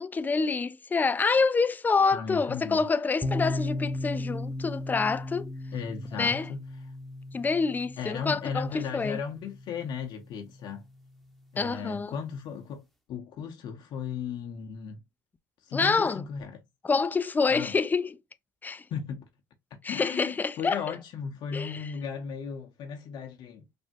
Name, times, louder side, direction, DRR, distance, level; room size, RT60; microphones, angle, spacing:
voice 1, 0.0-5.5 6.2-6.5 7.3-9.2 11.6-12.1 15.7-16.2 16.8-18.2 18.6-18.8 19.8-20.9 21.5-21.9, left 4 dB, 20° left, 0.3 m, -27 dB
voice 2, 2.1-2.9 5.7-6.6 8.0-10.8 11.5-15.0 15.7-16.6 17.5-17.7 18.9-19.3 19.7-23.6, left 6 dB, 55° left, 0.7 m, -36 dB
sound 1, 3.2-10.9, left 1 dB, ahead, 0.8 m, -36 dB
3.3 x 2.1 x 2.7 m
hypercardioid pair, 75°, 9 cm